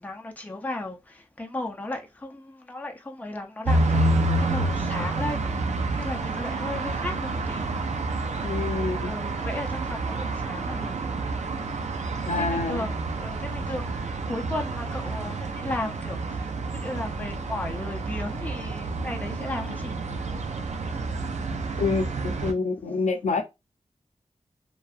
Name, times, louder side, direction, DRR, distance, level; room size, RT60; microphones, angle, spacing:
voice 1, 0.0-4.1 4.4-5.4 6.0-7.7 9.0-10.9 11.6-11.7 12.4-16.5 16.8-20.0, left 2 dB, 15° left, 0.5 m, -35 dB
sound 1, 3.6-22.5, right 2 dB, 70° right, 0.4 m, -29 dB
voice 2, 8.4-9.1 12.3-12.9 21.8-23.4, left 4 dB, 80° left, 0.5 m, -27 dB
2.6 x 2.2 x 2.3 m
wide cardioid pair, 100°, 12 cm